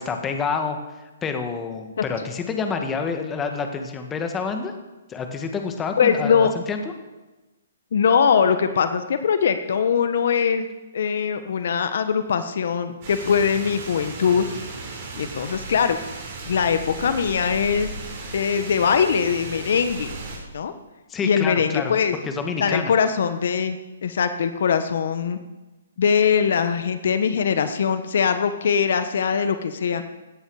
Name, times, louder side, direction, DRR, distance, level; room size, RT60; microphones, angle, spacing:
voice 1, 0.0-4.7 5.1-6.8 21.1-21.9 22.2-22.9, left 5 dB, 15° left, 5 dB, 1.7 m, -28 dB
voice 2, 6.0-6.5 7.9-10.7 10.9-14.5 15.2-16.0 16.4-17.9 18.3-20.1 20.5-20.7 21.2-22.1 22.6-23.8 24.0-25.4 26.0-30.0, left 7 dB, 65° left, 10 dB, 1.1 m, -21 dB
sound 1, 13.0-20.4, right 3 dB, 45° right, 5.5 m, -36 dB
17.0 x 12.0 x 4.9 m, 1.1 s
hypercardioid pair, 140°, 0 cm